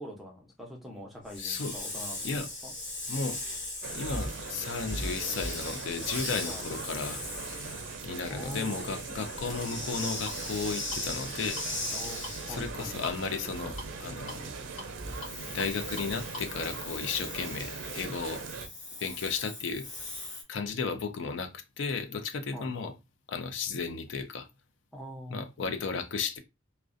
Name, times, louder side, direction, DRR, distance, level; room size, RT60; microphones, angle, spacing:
voice 1, 0.0-2.7 6.5-6.6 8.3-9.0 11.9-12.9 22.5-22.9 24.9-25.5, equal, ahead, 0.5 m, -44 dB
Hiss, 1.3-12.7 15.0-20.4, left 2 dB, 40° left, 0.9 m, -39 dB
voice 2, 1.4-1.8 2.2-2.5 3.1-3.4 3.9-7.2 8.0-11.6 12.5-14.5 15.5-18.4 19.0-19.9 20.5-22.9 23.3-24.5 25.3-26.4, left 5 dB, 65° left, 0.4 m, -34 dB
sound 1, 2.5-18.0, equal, 90° left, 1.1 m, -45 dB
sound 2, 3.8-18.7, right 4 dB, 70° right, 0.5 m, -41 dB
2.4 x 2.1 x 2.4 m
head